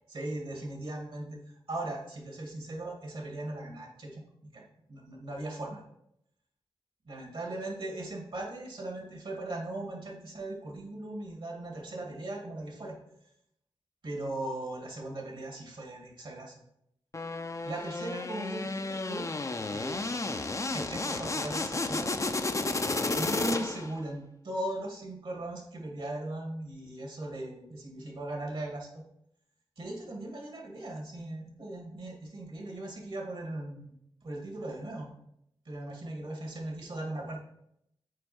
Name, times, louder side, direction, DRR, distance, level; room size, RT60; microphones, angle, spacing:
voice 1, 0.1-5.8 7.1-13.0 14.0-16.5 17.6-19.3 19.7-22.2 22.8-29.0 29.8-33.9 34.2-35.1 35.7-37.4, right 1 dB, 65° right, 0 dB, 2.3 m, -38 dB
sound 1, 17.1-24.0, left 3 dB, 35° left, 0.6 m, -32 dB
6.6 x 4.5 x 4.4 m, 0.76 s
cardioid pair, 40°, 10 cm